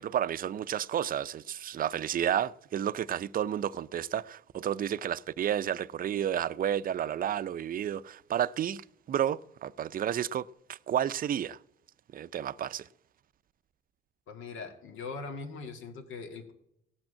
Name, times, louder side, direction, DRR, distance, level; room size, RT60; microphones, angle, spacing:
voice 1, 0.0-8.8 9.1-11.6 12.1-12.9, right 10 dB, 45° right, 0.4 m, -31 dB
voice 2, 14.3-16.5, left 4 dB, 80° left, 1.9 m, -41 dB
16.5 x 6.1 x 8.8 m
cardioid pair, 90°, 20 cm